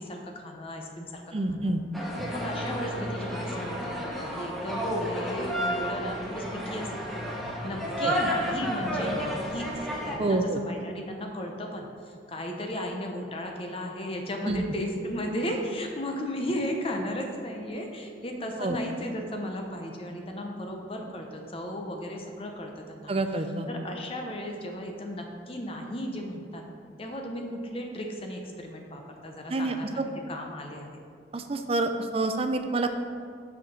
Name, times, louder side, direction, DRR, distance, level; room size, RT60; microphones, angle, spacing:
voice 1, 0.0-1.2 1.5-1.8 2.3-7.1 7.6-23.1 23.7-26.6 27.0-31.0, equal, 30° left, 2 dB, 0.8 m, -35 dB
voice 2, 1.3-1.8 8.0-8.1 10.2-10.6 14.5-14.6 18.6-18.8 23.1-23.7 29.5-30.1 31.3-32.9, right 2 dB, 30° right, 7 dB, 0.5 m, -27 dB
sound 1, 1.9-10.2, equal, ahead, 1.0 m, -31 dB
6.2 x 5.9 x 5.3 m, 2.3 s
head